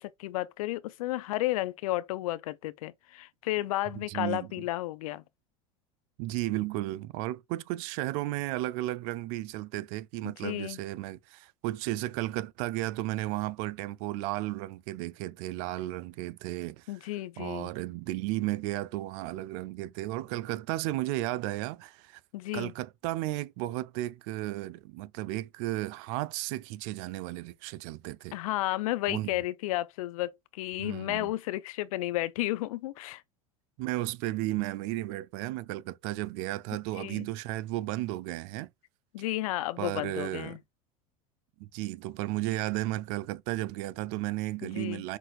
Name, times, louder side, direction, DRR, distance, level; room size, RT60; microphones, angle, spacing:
voice 1, 0.0-5.2 10.2-10.8 16.9-17.7 22.3-22.7 28.3-33.2 36.9-37.3 39.1-40.6 44.6-45.0, left 17 dB, 75° left, 0.5 m, -32 dB
voice 2, 4.0-4.5 6.2-16.9 17.4-22.2 22.5-28.4 29.1-29.4 30.8-31.3 33.8-38.7 39.8-40.6 41.6-45.2, right 17 dB, 60° right, 0.4 m, -34 dB
5.9 x 2.5 x 2.4 m
hypercardioid pair, 95°, 18 cm